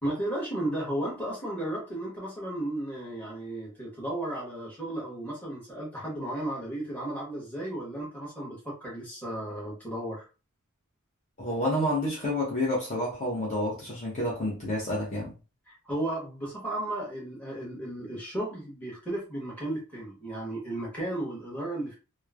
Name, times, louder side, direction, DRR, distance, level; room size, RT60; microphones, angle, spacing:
voice 1, 0.0-10.2 15.7-22.0, right 1 dB, 5° left, 1.0 m, -34 dB
voice 2, 11.4-15.3, left 1 dB, 35° left, 0.7 m, -29 dB
3.0 x 2.0 x 2.3 m
head